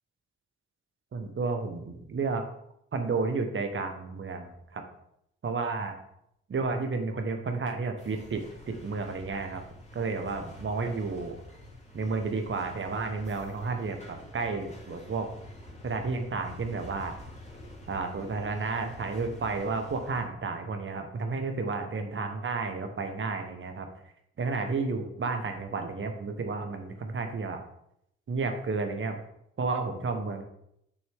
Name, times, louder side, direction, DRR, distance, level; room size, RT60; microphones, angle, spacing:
voice 1, 1.1-2.4 2.9-4.8 5.4-6.0 6.5-9.6 9.9-11.4 11.9-15.3 15.8-17.1 17.9-23.9 24.4-27.6 28.3-29.2 29.6-30.4, right 4 dB, 40° right, 6 dB, 1.3 m, -32 dB
sound 1, 8.0-20.2, left 1 dB, 25° left, 2.6 m, -47 dB
6.6 x 6.0 x 3.6 m, 0.77 s
hypercardioid pair, 40°, 30 cm